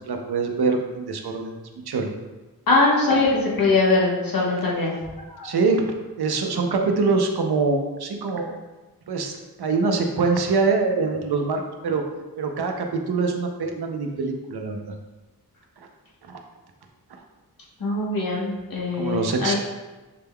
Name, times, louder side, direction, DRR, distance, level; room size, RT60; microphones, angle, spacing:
voice 1, 0.1-1.5 1.9-2.1 5.4-5.9 6.2-8.6 9.1-12.1 12.4-14.8 16.3-16.4 19.0-19.5, right 4 dB, 85° right, 3 dB, 0.6 m, -24 dB
voice 2, 2.7-5.0 5.3-5.5 17.8-19.5, left 3 dB, 65° left, -4 dB, 1.2 m, -21 dB
6.6 x 3.5 x 2.2 m, 1.2 s
wide cardioid pair, 80°, 38 cm